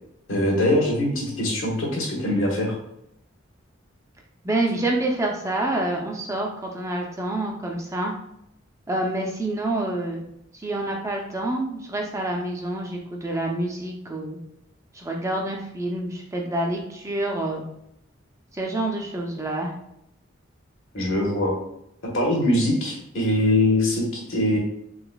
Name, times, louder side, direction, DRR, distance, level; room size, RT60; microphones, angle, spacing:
voice 1, 0.3-2.8 20.9-21.6 22.1-24.6, left 1 dB, 80° left, -1 dB, 1.2 m, -22 dB
voice 2, 4.4-8.1 8.9-10.2 10.5-14.4 14.9-17.6 18.5-19.7, right 1 dB, 15° right, 0 dB, 0.4 m, -27 dB
3.9 x 3.3 x 2.2 m, 0.78 s
head